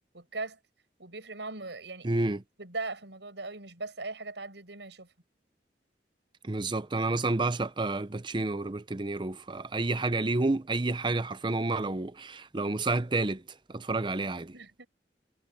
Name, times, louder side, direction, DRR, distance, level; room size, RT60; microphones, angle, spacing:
voice 1, 0.1-0.6 1.0-2.1 2.6-5.1 14.5-14.9, right 3 dB, 90° right, 6.4 m, -39 dB
voice 2, 2.0-2.4 6.4-13.4 13.7-14.5, right 2 dB, 25° right, 0.7 m, -30 dB
head